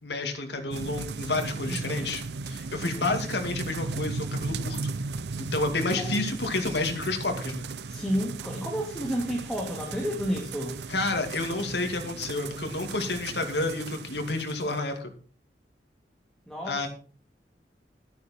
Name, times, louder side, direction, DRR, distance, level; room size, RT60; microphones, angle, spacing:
voice 1, 0.0-4.9 5.5-7.7 10.9-15.1 16.6-16.9, left 2 dB, 75° left, 5 dB, 2.4 m, -30 dB
sound 1, 0.7-14.8, right 4 dB, 70° right, 0.6 m, -36 dB
voice 2, 1.6-2.1 2.8-3.1 6.0-6.2 7.8-10.8 16.5-16.9, equal, 5° left, -1 dB, 2.3 m, -31 dB
13.0 x 9.5 x 4.4 m, 0.39 s
head